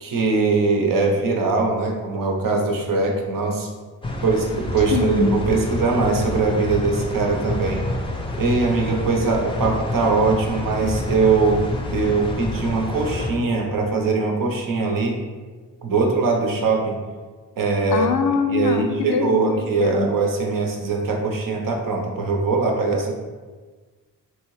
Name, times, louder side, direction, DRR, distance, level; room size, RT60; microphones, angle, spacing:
voice 1, 0.0-3.7 4.2-7.8 8.4-11.6 11.9-15.2 15.8-17.0 17.6-23.2, right 4 dB, 60° right, 1 dB, 0.8 m, -21 dB
sound 1, 4.0-13.3, left 1 dB, 15° left, 0.6 m, -28 dB
voice 2, 4.9-5.4 17.9-20.1, left 4 dB, 70° left, 5 dB, 0.5 m, -23 dB
3.2 x 2.6 x 3.1 m, 1.4 s
supercardioid pair, 40°, 38 cm